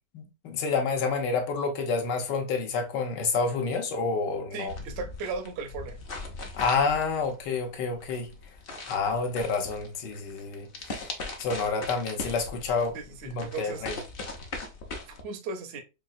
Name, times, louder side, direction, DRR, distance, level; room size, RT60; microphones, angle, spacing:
voice 1, 0.1-4.7 6.6-8.3 8.8-11.0 11.4-13.0 13.2-14.0, left 4 dB, 80° left, 1.4 m, -29 dB
voice 2, 4.5-6.0 12.9-13.8 15.2-15.8, right 4 dB, 65° right, 0.6 m, -36 dB
sound 1, 4.7-15.2, left 3 dB, 60° left, 0.5 m, -40 dB
4.7 x 2.4 x 2.5 m
omnidirectional pair, 1.9 m